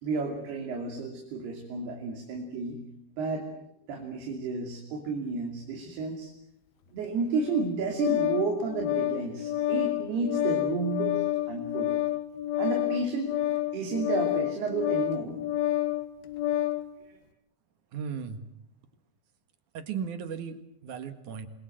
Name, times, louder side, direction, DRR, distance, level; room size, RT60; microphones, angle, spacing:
voice 1, 0.0-2.8 3.2-3.5 3.9-6.3 6.9-11.1 11.5-11.9 12.6-13.4 13.7-15.4 17.1-17.2, right 4 dB, 90° right, 2 dB, 4.9 m, -31 dB
Organ, 7.4-16.9, left 13 dB, 75° left, 3.0 m, -29 dB
voice 2, 17.9-18.4 19.7-21.5, right 7 dB, 60° right, 10 dB, 2.9 m, -36 dB
28.5 x 21.5 x 7.8 m, 0.77 s
omnidirectional pair, 4.5 m